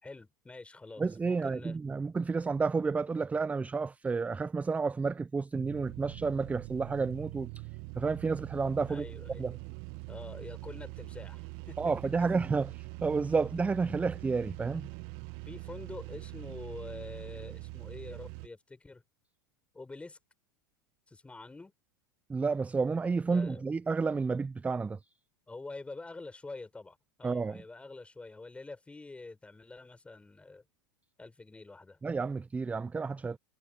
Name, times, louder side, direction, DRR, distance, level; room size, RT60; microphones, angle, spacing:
voice 1, 0.0-1.8 8.9-9.5 10.1-11.8 12.2-12.4 15.4-19.0 19.7-20.2 21.1-21.7 23.3-23.7 25.5-30.6 31.2-32.0, left 3 dB, 10° left, 6.5 m, -46 dB
voice 2, 1.0-7.5 7.9-9.0 9.4-9.6 11.8-14.9 22.3-25.0 27.2-27.6 32.0-33.4, right 4 dB, 15° right, 0.8 m, -31 dB
sound 1, 5.5-18.5, right 31 dB, 50° right, 1.6 m, -43 dB
hypercardioid pair, 90°, 11 cm